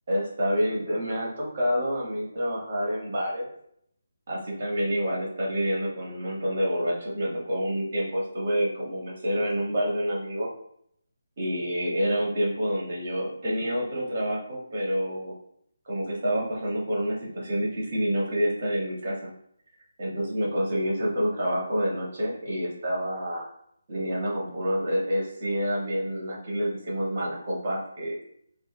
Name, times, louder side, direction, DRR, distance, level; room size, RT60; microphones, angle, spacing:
voice 1, 0.1-3.4 4.3-10.5 11.4-15.3 15.9-19.3 20.0-23.5 23.9-28.2, equal, 40° right, -4 dB, 1.4 m, -28 dB
4.3 x 2.3 x 2.2 m, 0.69 s
figure-of-eight pair, 150°, 0 cm